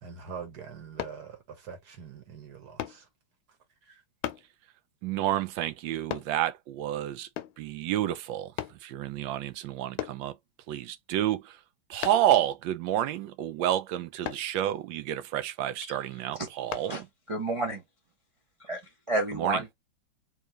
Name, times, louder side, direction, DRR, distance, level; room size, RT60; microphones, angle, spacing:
voice 1, 0.0-3.1 3.9-4.0, right 6 dB, 55° right, 1.7 m, -44 dB
sound 1, 1.0-1.2 2.8-3.0 4.2-4.5 6.1-6.3 7.4-7.6 8.6-8.8 10.0-10.2 12.0-12.3 14.2-14.5 16.7-16.9 17.5-17.6, left 12 dB, 80° left, 1.3 m, -35 dB
voice 2, 5.0-7.3 7.6-8.5 8.8-10.4 10.7-11.6 11.9-17.1 19.3-19.6, right 12 dB, 75° right, 1.2 m, -29 dB
voice 3, 17.3-17.8 18.6-18.8 19.1-19.7, right 2 dB, 25° right, 0.6 m, -30 dB
3.5 x 3.1 x 3.0 m
omnidirectional pair, 2.3 m